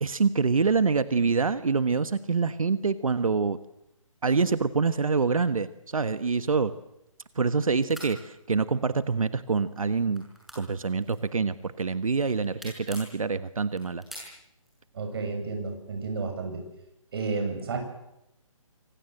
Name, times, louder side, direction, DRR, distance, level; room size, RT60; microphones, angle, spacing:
voice 1, 0.0-3.6 4.2-6.7 7.3-10.2 10.5-14.0, right 4 dB, 80° right, 12 dB, 1.4 m, -26 dB
sound 1, 6.4-7.5 7.8-8.1 8.9-9.4 9.7-11.6 12.0-13.2 13.7-14.8, equal, ahead, 6.5 m, -45 dB
voice 2, 14.9-16.6 17.1-17.8, right 4 dB, 45° right, 5 dB, 7.5 m, -31 dB
26.0 x 24.5 x 7.9 m, 0.84 s
hypercardioid pair, 160°, 18 cm